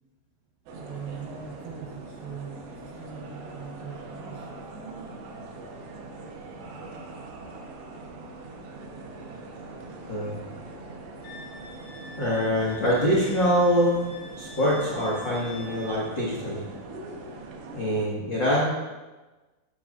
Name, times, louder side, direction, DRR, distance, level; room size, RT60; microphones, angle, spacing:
voice 1, 0.7-5.1 11.1-11.8, right 6 dB, 35° right, -10 dB, 4.3 m, -42 dB
sound 1, 0.7-18.1, right 2 dB, 75° right, 3.2 m, -42 dB
voice 2, 10.1-10.4 12.2-14.1 14.4-16.6 17.7-18.7, equal, 75° left, -7 dB, 1.0 m, -24 dB
Wind instrument woodwind instrument, 11.2-16.0, left 2 dB, 55° left, 3.1 m, -46 dB
12.5 x 10.5 x 2.6 m, 1.2 s
omnidirectional pair, 5.4 m